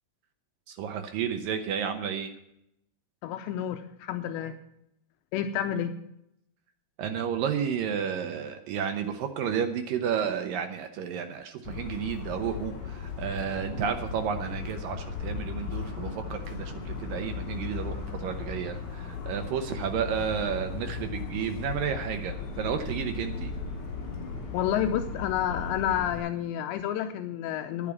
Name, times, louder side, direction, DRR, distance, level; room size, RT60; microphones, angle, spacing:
voice 1, 0.7-2.3 7.0-23.5, right 8 dB, 75° right, 6 dB, 2.1 m, -32 dB
voice 2, 3.2-4.6 5.3-5.9 24.5-27.9, left 10 dB, 85° left, 7 dB, 2.9 m, -30 dB
Motor vehicle (road) / Siren, 11.6-26.2, left 5 dB, 45° left, 4.1 m, -36 dB
12.5 x 8.6 x 7.1 m, 0.79 s
omnidirectional pair, 5.0 m